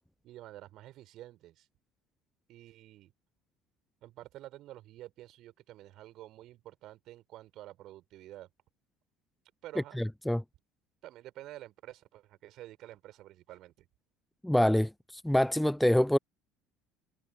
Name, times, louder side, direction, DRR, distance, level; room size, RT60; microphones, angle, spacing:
voice 1, 0.2-1.7 2.5-3.1 4.0-8.5 9.6-10.0 11.0-13.9, right 15 dB, 50° right, 4.5 m, -49 dB
voice 2, 10.0-10.4 14.4-16.2, left 1 dB, 5° left, 0.3 m, -26 dB
figure-of-eight pair, 65°, 0 cm